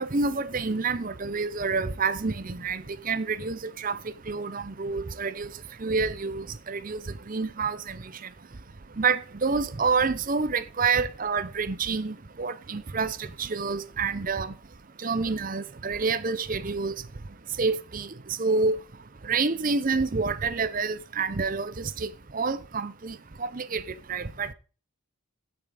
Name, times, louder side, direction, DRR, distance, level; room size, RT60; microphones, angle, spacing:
voice 1, 0.0-4.0 4.3-5.5 5.8-7.0 7.3-8.0 9.0-14.5 15.0-16.9 17.6-18.1 18.4-18.8 19.2-23.8 24.1-24.5, right 4 dB, 40° right, 0.6 m, -28 dB
9.3 x 7.9 x 5.0 m
head